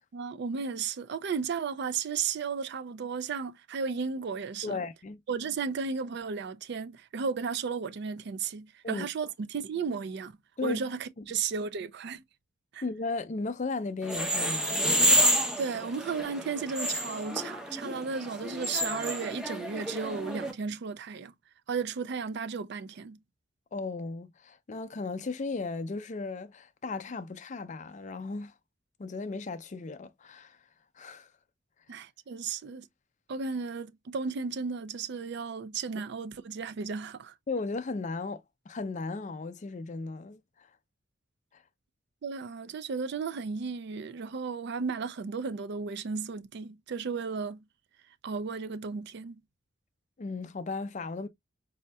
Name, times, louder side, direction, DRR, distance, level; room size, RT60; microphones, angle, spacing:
voice 1, 0.1-4.8 5.3-10.3 10.6-12.2 12.7-12.8 15.6-21.3 21.7-23.2 31.9-32.9 33.3-37.3 42.2-47.6 48.2-49.4, right 5 dB, 60° right, 0.4 m, -34 dB
voice 2, 4.6-5.2 8.8-9.1 10.6-10.8 11.2-11.3 12.8-14.8 23.7-28.5 29.0-30.6 31.0-31.3 37.5-40.7 41.5-41.6 50.2-51.3, left 3 dB, 40° left, 0.4 m, -36 dB
sound 1, 14.0-20.5, equal, 5° right, 0.7 m, -29 dB
4.2 x 2.7 x 2.2 m
head